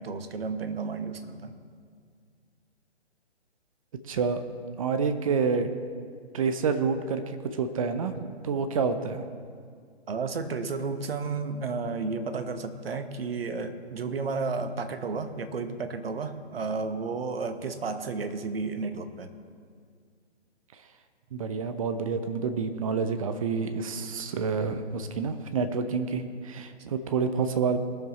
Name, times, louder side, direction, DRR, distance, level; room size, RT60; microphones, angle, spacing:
voice 1, 0.0-1.6 10.1-19.3, right 4 dB, 55° right, 8 dB, 1.1 m, -32 dB
voice 2, 4.1-4.4 4.8-5.7 6.3-9.2 21.3-27.8, right 5 dB, 30° right, 9 dB, 0.7 m, -28 dB
21.0 x 7.2 x 4.2 m, 2.1 s
figure-of-eight pair, 140°, 34 cm